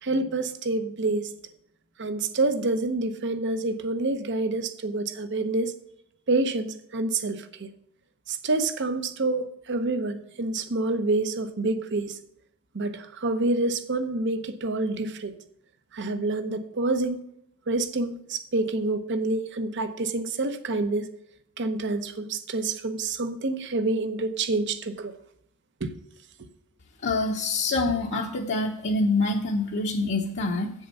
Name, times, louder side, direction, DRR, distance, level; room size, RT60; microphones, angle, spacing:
voice 1, 0.0-1.3 2.0-5.7 6.3-7.7 8.3-12.2 12.7-15.4 15.9-17.2 17.7-21.1 21.6-25.1 25.8-25.9, right 2 dB, 55° right, 0.8 m, -27 dB
voice 2, 27.0-30.7, left 3 dB, 50° left, 0.8 m, -26 dB
8.0 x 7.3 x 5.4 m
head